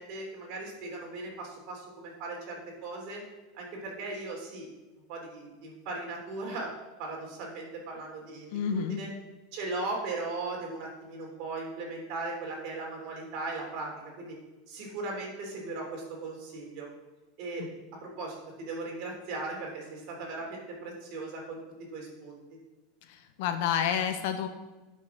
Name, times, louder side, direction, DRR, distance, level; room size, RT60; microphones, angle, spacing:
voice 1, 0.0-3.2 3.5-4.7 5.1-6.7 7.0-9.1 9.5-13.9 14.2-14.4 14.7-16.9 17.4-17.6 18.0-21.6 21.9-22.4, right 3 dB, 55° right, -1 dB, 3.5 m, -38 dB
voice 2, 8.5-9.0 17.6-17.7 23.1-24.5, left 8 dB, 65° left, 6 dB, 1.2 m, -29 dB
10.0 x 5.9 x 5.9 m, 1.1 s
supercardioid pair, 145°, 0 cm